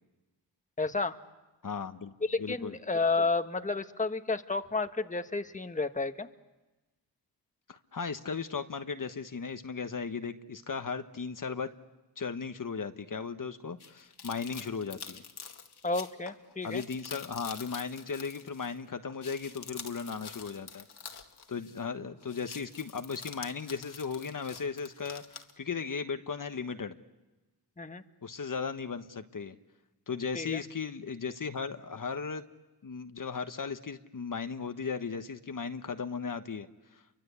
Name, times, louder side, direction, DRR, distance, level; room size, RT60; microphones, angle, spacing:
voice 1, 0.8-1.2 2.2-6.3 15.8-16.8 27.8-28.0 30.3-30.6, left 3 dB, 20° left, 8 dB, 1.4 m, -31 dB
voice 2, 1.6-2.1 2.4-2.8 7.7-11.7 12.2-15.2 16.6-20.8 21.5-26.9 28.2-29.5 30.1-32.4 32.8-36.7 36.9-37.0, left 5 dB, 50° left, 8 dB, 1.3 m, -36 dB
sound 1, 13.8-18.8 19.1-21.9 22.2-25.5, left 6 dB, 65° left, 2.1 m, -47 dB
29.0 x 24.5 x 8.3 m, 1.1 s
cardioid pair, 60°, 42 cm